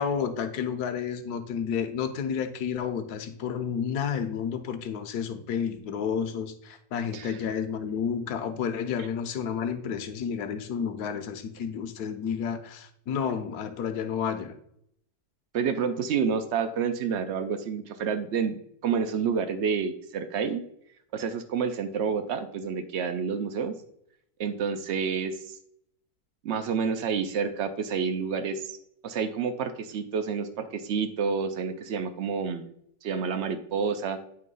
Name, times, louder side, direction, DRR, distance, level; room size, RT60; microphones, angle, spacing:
voice 1, 0.0-14.6, left 7 dB, 70° left, 9 dB, 1.2 m, -31 dB
voice 2, 15.5-20.6 21.1-23.7 24.4-25.6 26.4-28.7 29.0-32.7 33.0-34.2, right 6 dB, 85° right, 8 dB, 0.6 m, -29 dB
9.2 x 3.1 x 5.3 m, 0.70 s
omnidirectional pair, 1.9 m